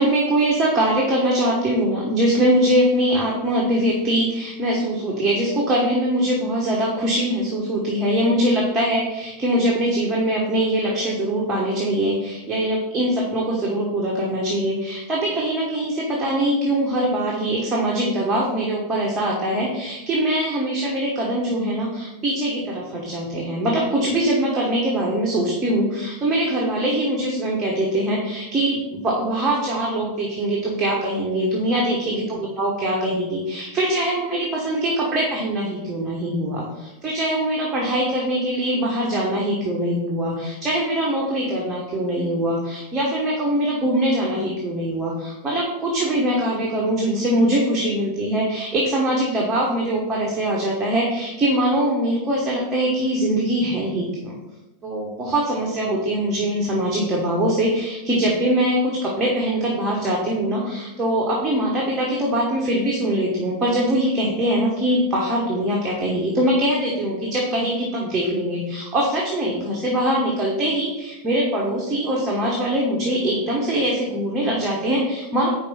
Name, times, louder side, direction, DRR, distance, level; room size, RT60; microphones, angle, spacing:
voice 1, 0.0-54.4 54.8-75.5, right 1 dB, 20° right, -3 dB, 1.4 m, -22 dB
5.2 x 4.3 x 5.6 m, 0.98 s
figure-of-eight pair, 90°, 0 cm